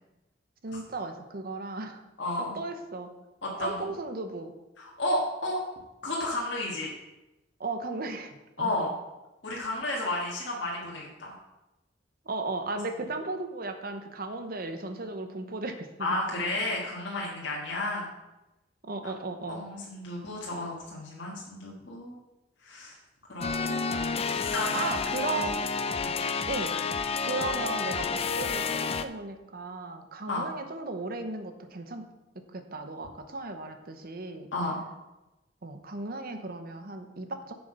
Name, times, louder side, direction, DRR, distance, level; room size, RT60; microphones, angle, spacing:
voice 1, 0.6-2.0 2.5-3.1 3.6-4.5 7.6-8.9 12.3-16.5 18.8-19.6 24.7-25.6 26.5-26.7 27.2-32.1 32.5-34.5 35.6-37.5, right 3 dB, 55° right, 7 dB, 0.9 m, -36 dB
voice 2, 2.2-2.6 3.4-3.8 4.8-5.6 6.0-6.9 8.6-8.9 9.4-11.3 16.0-18.1 19.0-19.1 19.5-22.2 22.6-23.0 23.3-24.0 24.5-24.8 25.2-25.4 26.0-26.1 30.3-30.4 34.5-34.8, left 1 dB, 75° left, -3 dB, 1.6 m, -32 dB
sound 1, 23.4-29.0, left 5 dB, 35° left, 0.4 m, -30 dB
7.6 x 7.0 x 5.5 m, 1.0 s
head